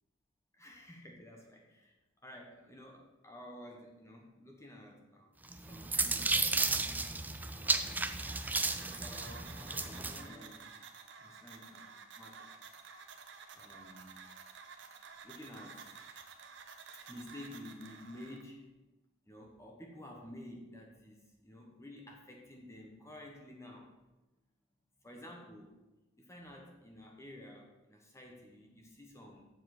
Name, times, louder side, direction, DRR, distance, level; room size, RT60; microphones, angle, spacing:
voice 1, 0.6-1.9 2.2-5.4 5.7-7.1 7.5-8.2 8.6-10.7 11.2-12.5 13.5-14.1 15.2-16.0 17.1-18.7 19.3-21.2 21.4-23.9 25.0-25.8 26.2-29.4, left 1 dB, 15° left, 1 dB, 1.2 m, -51 dB
sound 1, 5.5-10.2, right 3 dB, 10° right, 0.4 m, -33 dB
sound 2, 7.8-18.4, right 5 dB, 60° right, 1.0 m, -52 dB
7.5 x 7.4 x 6.0 m, 1.1 s
head